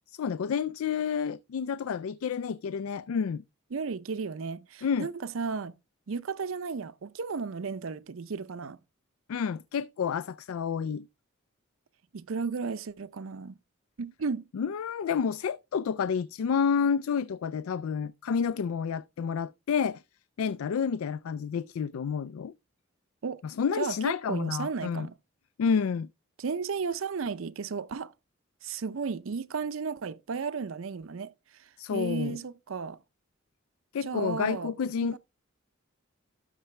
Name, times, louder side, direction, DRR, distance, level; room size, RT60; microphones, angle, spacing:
voice 1, 0.1-3.4 4.8-5.1 9.3-11.1 14.5-20.0 20.4-22.5 23.4-25.1 25.6-26.1 31.8-32.4 33.9-35.2, left 6 dB, 85° left, 0.4 m, -29 dB
voice 2, 3.7-5.8 6.1-8.8 12.1-13.6 14.0-14.4 23.2-23.4 23.8-25.1 26.4-28.1 28.6-31.3 31.6-33.0 34.0-34.7 35.0-35.2, right 5 dB, 70° right, 0.5 m, -34 dB
12.5 x 5.5 x 3.2 m
head